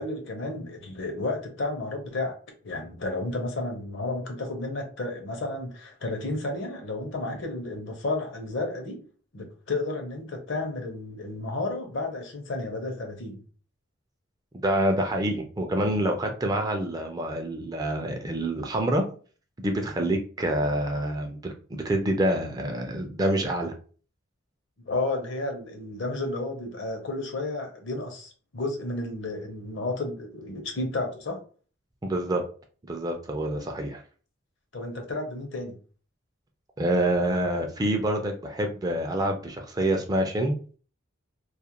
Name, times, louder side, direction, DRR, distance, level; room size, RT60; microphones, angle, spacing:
voice 1, 0.0-2.3 2.6-9.0 9.3-13.4 24.8-31.4 34.7-35.8, left 2 dB, 60° left, 0.7 m, -32 dB
voice 2, 14.5-19.0 19.6-23.7 32.0-32.4 32.9-34.0 36.8-40.8, right 1 dB, 20° right, 0.3 m, -27 dB
2.4 x 2.1 x 2.8 m
head